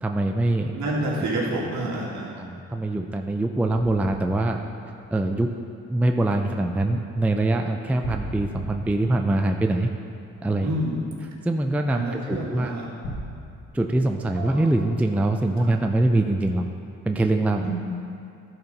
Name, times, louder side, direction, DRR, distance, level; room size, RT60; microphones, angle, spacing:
voice 1, 0.0-0.7 1.5-1.6 2.4-4.6 5.1-5.5 5.9-9.9 10.4-10.7 11.4-12.7 13.7-16.6 17.1-17.7, right 2 dB, 5° right, 4 dB, 0.4 m, -23 dB
voice 2, 0.7-2.3 10.6-10.9 11.9-12.9 14.4-14.6 17.6-17.7, right 1 dB, 65° right, -4 dB, 2.2 m, -28 dB
sound 1, 5.0-5.6 8.0-10.6 13.0-13.2, equal, 80° left, 1.6 m, -37 dB
11.5 x 4.6 x 5.2 m, 2.6 s
cardioid pair, 90°, 30 cm